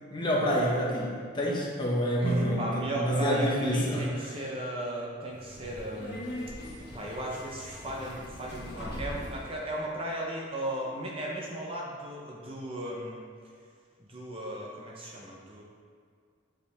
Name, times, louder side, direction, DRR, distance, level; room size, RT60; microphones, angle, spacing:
voice 1, 0.1-4.3, equal, 25° left, -4 dB, 1.1 m, -28 dB
voice 2, 2.2-6.2 6.9-13.2 14.0-15.6, right 1 dB, 30° right, -2 dB, 0.7 m, -36 dB
sound 1, 2.2-4.4, equal, 75° right, 1.5 m, -38 dB
Subway metro underground, 5.3-9.5, equal, 55° left, 1.5 m, -41 dB
8.1 x 5.0 x 3.4 m, 2.1 s
head